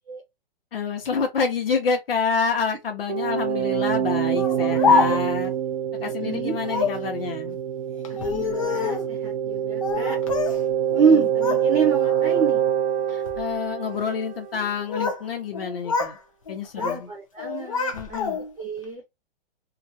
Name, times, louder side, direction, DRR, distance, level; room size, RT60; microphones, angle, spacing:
voice 1, 0.7-5.5 6.0-7.6 11.1-11.2 13.1-16.2 16.5-17.1 17.9-18.4, left 5 dB, 75° left, 1.1 m, -28 dB
sound 1, 3.1-14.7, right 9 dB, 85° right, 0.5 m, -26 dB
Speech, 4.4-5.5 6.6-7.1 8.0-9.1 9.8-10.6 10.9-11.6 12.0-12.4 13.1-13.4 14.5-15.2 15.5-16.2 16.5-17.0 17.4-18.6, left 5 dB, 35° left, 0.6 m, -26 dB
voice 2, 6.2-6.5 8.1-10.2 10.9-12.6 16.7-18.2 18.6-19.0, right 6 dB, 15° right, 0.9 m, -26 dB
2.8 x 2.5 x 2.8 m
hypercardioid pair, 175°, 29 cm